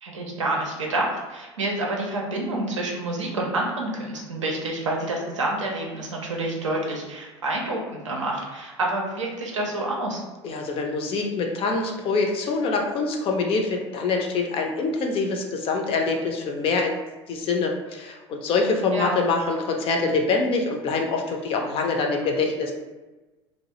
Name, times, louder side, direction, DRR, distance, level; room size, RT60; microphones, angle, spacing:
voice 1, 0.0-7.8 8.0-10.2 18.9-19.2, right 2 dB, 80° right, -1 dB, 0.5 m, -28 dB
voice 2, 10.4-17.0 17.3-22.7, left 3 dB, 35° left, 2 dB, 0.4 m, -25 dB
2.3 x 2.0 x 2.8 m, 1.1 s
figure-of-eight pair, 70°, 16 cm